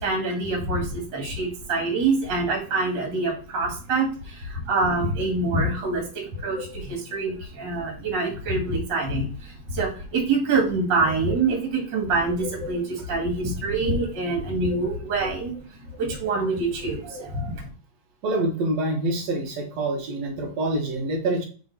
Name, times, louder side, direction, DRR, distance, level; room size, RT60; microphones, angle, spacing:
voice 1, 0.0-15.5 16.0-17.7, right 3 dB, 35° right, 1 dB, 2.2 m, -25 dB
voice 2, 18.2-21.5, right 2 dB, 60° right, 2 dB, 2.1 m, -26 dB
5.6 x 4.4 x 4.0 m, 0.39 s
omnidirectional pair, 3.9 m